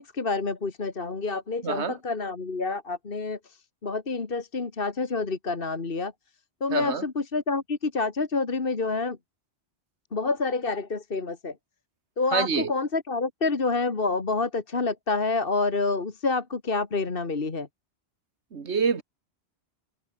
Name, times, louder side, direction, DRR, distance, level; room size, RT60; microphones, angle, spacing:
voice 1, 0.0-6.1 6.6-9.2 10.1-11.6 12.2-17.7, left 3 dB, 55° left, 2.1 m, -28 dB
voice 2, 1.6-1.9 6.7-7.0 12.3-12.7 18.5-19.0, right 5 dB, 90° right, 1.9 m, -26 dB
omnidirectional pair, 1.1 m